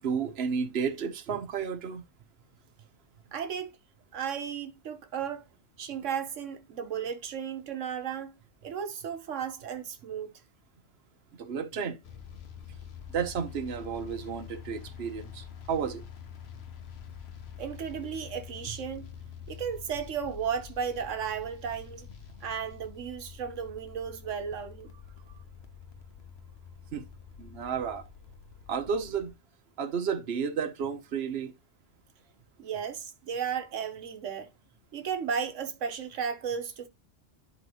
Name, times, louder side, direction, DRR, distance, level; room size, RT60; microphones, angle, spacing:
voice 1, 0.0-2.0 11.4-12.0 13.1-16.0 26.9-27.1 27.4-28.0 28.7-29.3 29.8-31.5, right 6 dB, 60° right, 1.2 m, -32 dB
voice 2, 3.3-3.7 4.1-5.4 5.8-8.3 8.6-10.3 17.6-19.1 19.5-22.1 22.4-24.9 32.6-34.5 34.9-36.9, right 7 dB, 85° right, 1.3 m, -34 dB
sound 1, 12.0-29.3, left 8 dB, 60° left, 1.1 m, -47 dB
11.0 x 3.9 x 3.0 m
omnidirectional pair, 1.2 m